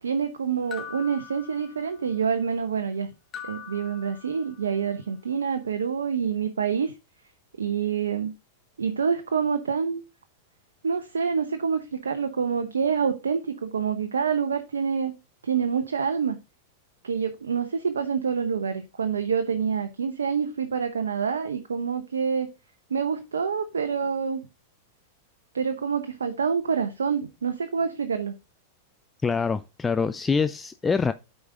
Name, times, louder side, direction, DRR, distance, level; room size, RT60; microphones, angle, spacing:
voice 1, 0.0-3.1 3.4-6.9 7.6-8.3 8.8-10.0 10.8-15.1 15.4-16.4 17.0-22.5 22.9-24.4 25.5-28.3, right 6 dB, 80° right, 0.8 m, -27 dB
sound 1, 0.7-2.2 3.3-4.8, left 8 dB, 30° left, 1.4 m, -42 dB
voice 2, 29.2-31.1, left 5 dB, 15° left, 0.4 m, -25 dB
9.5 x 5.2 x 3.7 m
hypercardioid pair, 100°, 0 cm